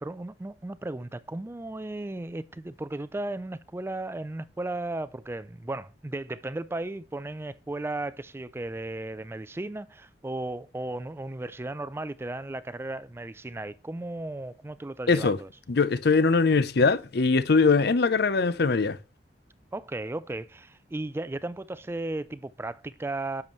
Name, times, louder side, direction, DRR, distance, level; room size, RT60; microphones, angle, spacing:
voice 1, 0.0-15.5 19.7-23.4, right 2 dB, 15° right, 0.4 m, -35 dB
voice 2, 15.1-15.4 15.7-19.0, left 4 dB, 65° left, 0.6 m, -22 dB
10.5 x 7.1 x 3.1 m
head